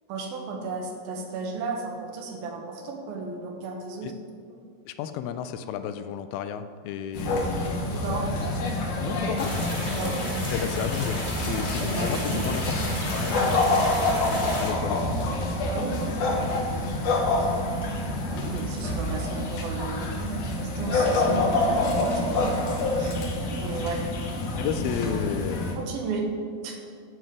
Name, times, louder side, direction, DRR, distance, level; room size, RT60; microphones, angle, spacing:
voice 1, 0.1-4.1 4.5-4.6 7.9-8.3 9.9-10.5 11.8-12.4 13.3-13.5 15.6-16.7 17.4-17.5 18.3-20.4 20.8-22.5 22.9-23.2 23.6-24.0 25.6-26.2 26.6-26.8, right 4 dB, 80° right, 1 dB, 2.9 m, -34 dB
voice 2, 4.9-7.7 9.0-9.5 10.5-12.7 13.1-14.1 14.6-15.2 24.6-25.9, left 9 dB, 85° left, 10 dB, 2.3 m, -32 dB
sound 1, 7.1-25.7, left 2 dB, 65° left, 2.4 m, -27 dB
sound 2, 9.4-14.7, left 1 dB, 35° left, 0.7 m, -33 dB
9.6 x 7.6 x 4.8 m, 2.2 s
omnidirectional pair, 4.3 m